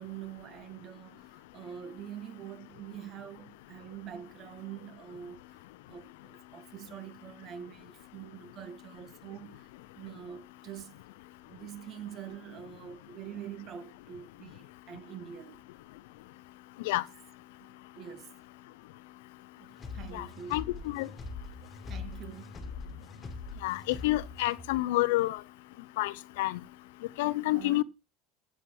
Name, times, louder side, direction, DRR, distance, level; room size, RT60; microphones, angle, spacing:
voice 1, 0.0-5.6 5.9-9.7 9.9-11.0 11.5-15.6 17.6-18.3 19.6-20.7 21.9-22.6 27.5-27.8, right 9 dB, 40° right, 1.2 m, -45 dB
sound 1, 19.8-24.8, left 4 dB, 20° left, 2.3 m, -43 dB
voice 2, 20.1-21.1 23.6-25.4 26.0-26.6 27.2-27.8, left 18 dB, 85° left, 0.6 m, -29 dB
8.4 x 5.6 x 7.7 m
supercardioid pair, 140°, 0 cm